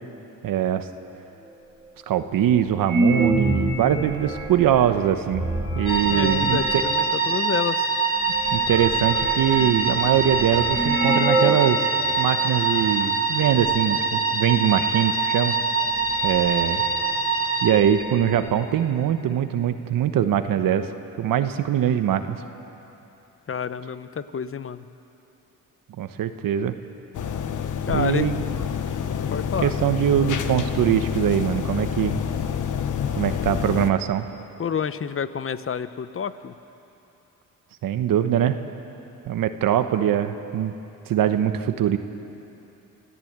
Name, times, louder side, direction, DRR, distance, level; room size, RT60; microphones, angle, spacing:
voice 1, 0.4-0.9 2.1-5.5 5.8-6.8 8.5-11.8 12.2-15.6 16.2-16.8 17.6-20.9 21.2-22.4 26.0-26.7 27.9-28.4 29.6-32.2 33.2-34.2 37.8-38.6 39.3-40.7 41.1-42.0, right 10 dB, 70° right, 9 dB, 1.2 m, -22 dB
sound 1, 1.4-1.5 2.1-2.2 2.8-7.1 7.8-7.9 8.2-11.7 12.0-12.1 12.8-13.1 13.4-13.9 15.1-15.2 15.6-17.2 17.5-17.6 17.8-18.6, right 1 dB, 10° right, 3.1 m, -28 dB
sound 2, 5.9-17.7, right 4 dB, 15° left, 4.3 m, -24 dB
voice 2, 6.0-7.9 23.5-24.8 27.8-28.3 29.3-29.7 34.6-36.5, left 7 dB, 40° left, 13 dB, 1.0 m, -29 dB
sound 3, 27.1-33.9, left 7 dB, 60° left, 1.3 m, -28 dB
25.5 x 15.0 x 8.9 m, 3.0 s
cardioid pair, 75°, 35 cm